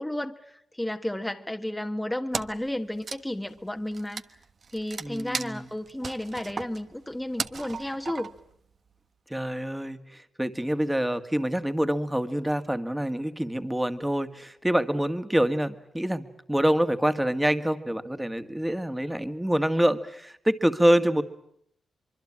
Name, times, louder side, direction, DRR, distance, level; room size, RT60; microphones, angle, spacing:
voice 1, 0.0-4.2 4.7-8.3, left 1 dB, 10° left, 5 dB, 1.4 m, -32 dB
Wood, 2.3-2.7 3.0-8.5, right 5 dB, 50° right, 1.1 m, -36 dB
voice 2, 5.0-5.7 9.3-21.2, right 1 dB, 10° right, 9 dB, 1.9 m, -26 dB
24.5 x 24.0 x 8.8 m, 0.71 s
cardioid pair, 90°, 0 cm